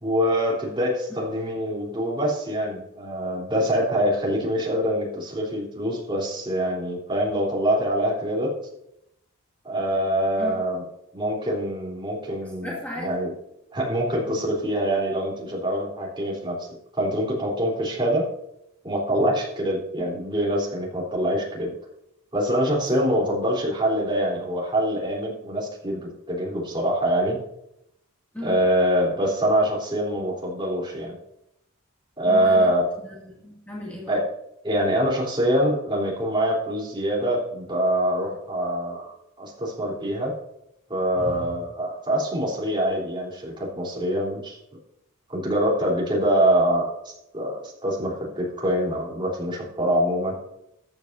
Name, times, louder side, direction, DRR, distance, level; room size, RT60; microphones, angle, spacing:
voice 1, 0.0-8.5 9.6-10.8 11.1-13.3 13.7-16.7 16.9-18.3 18.8-21.7 22.3-27.4 28.4-31.2 32.2-32.9 34.1-34.2 34.6-39.1 39.4-40.3 40.9-44.6 45.3-50.4, right 1 dB, 20° right, -4 dB, 3.6 m, -24 dB
voice 2, 12.4-13.2 20.0-20.1 28.3-28.6 32.3-34.2 41.2-41.6, left 1 dB, 5° left, -5 dB, 2.3 m, -36 dB
14.5 x 9.4 x 2.7 m, 0.81 s
head